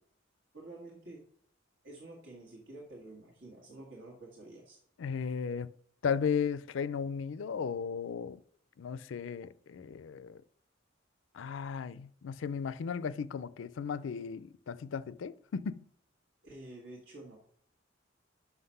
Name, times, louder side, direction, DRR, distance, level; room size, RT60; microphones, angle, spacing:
voice 1, 0.5-1.2 1.8-4.8 16.4-17.4, right 2 dB, 70° right, 1.6 m, -49 dB
voice 2, 5.0-5.7 6.0-8.4 8.8-10.4 11.3-15.9, left 6 dB, 80° left, 0.4 m, -35 dB
5.8 x 5.7 x 5.5 m
head